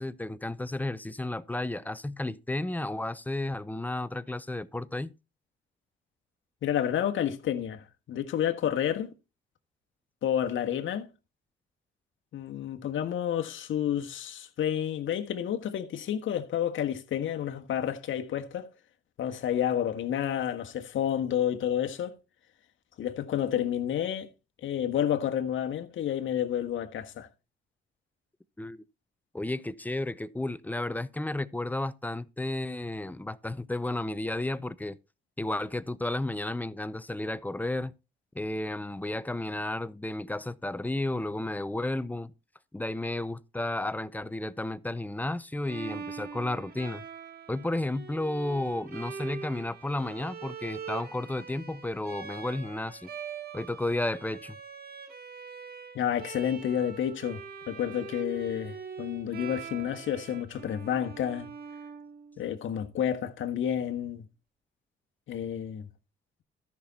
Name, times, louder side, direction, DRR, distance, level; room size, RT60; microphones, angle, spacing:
voice 1, 0.0-5.1 28.6-28.8 29.3-35.0 35.4-37.9 38.3-42.3 42.7-47.0 47.5-53.1 53.5-54.6, left 2 dB, 10° left, 0.6 m, -32 dB
voice 2, 6.6-9.1 10.2-11.1 12.3-18.7 19.2-22.1 23.0-24.3 24.6-27.3 55.9-57.4 57.7-61.5 62.4-64.2 65.3-65.9, left 10 dB, 70° left, 1.4 m, -30 dB
Bowed string instrument, 45.6-62.6, right 6 dB, 50° right, 2.1 m, -43 dB
13.5 x 5.9 x 4.1 m
cardioid pair, 80°, 21 cm